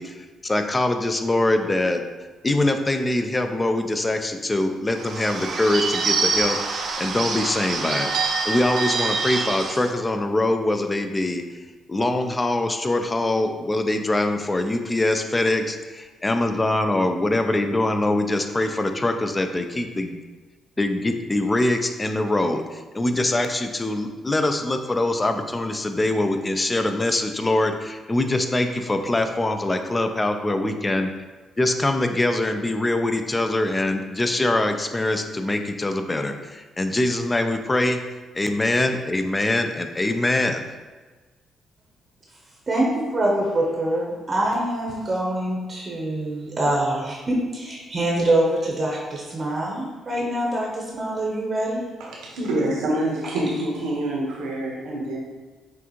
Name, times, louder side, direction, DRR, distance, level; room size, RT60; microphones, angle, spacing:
voice 1, 0.0-2.0 2.4-11.4 11.9-20.2 20.8-31.1 31.6-38.0 38.3-40.6, left 2 dB, 20° left, 6 dB, 0.4 m, -23 dB
Bird / Bell, 4.9-9.9, right 4 dB, 60° right, 0.5 m, -25 dB
voice 2, 42.7-51.8, right 1 dB, 35° right, -2 dB, 0.8 m, -24 dB
voice 3, 52.2-55.2, right 1 dB, 85° right, -3 dB, 1.0 m, -26 dB
6.0 x 2.4 x 2.9 m, 1.3 s
cardioid pair, 90°, 0 cm